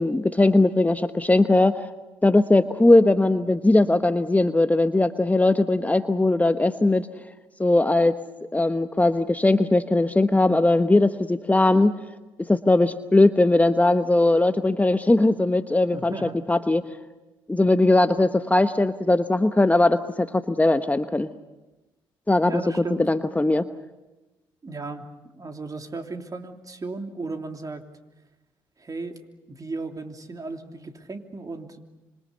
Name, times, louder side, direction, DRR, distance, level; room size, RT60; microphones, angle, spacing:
voice 1, 0.0-1.9 2.2-7.1 7.6-8.1 8.5-11.9 12.4-16.8 17.5-21.3 22.3-22.6 23.0-23.7, left 2 dB, 15° left, 10 dB, 1.1 m, -19 dB
voice 2, 15.9-16.4 22.4-23.1 24.6-25.1 25.3-27.8 28.8-29.2 29.5-31.8, right 3 dB, 30° right, 4 dB, 3.1 m, -35 dB
26.5 x 25.5 x 6.9 m, 1.1 s
hypercardioid pair, 50°, 11 cm